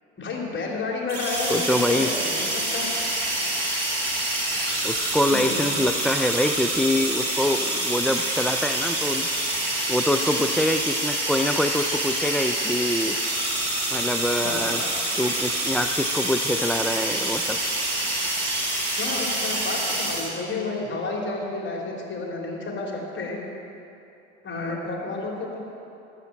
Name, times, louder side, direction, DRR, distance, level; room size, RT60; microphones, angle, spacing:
voice 1, 0.2-2.9 5.3-5.7 14.4-14.9 19.0-23.4 24.4-25.6, left 3 dB, 35° left, -2 dB, 3.2 m, -31 dB
sound 1, 1.1-20.3, right 1 dB, 85° right, 2.9 m, -26 dB
voice 2, 1.5-2.1 4.8-9.3 9.9-13.2 13.9-14.8 15.2-17.6, left 1 dB, ahead, 6 dB, 0.3 m, -25 dB
9.9 x 7.9 x 8.8 m, 2.8 s
hypercardioid pair, 65°, 34 cm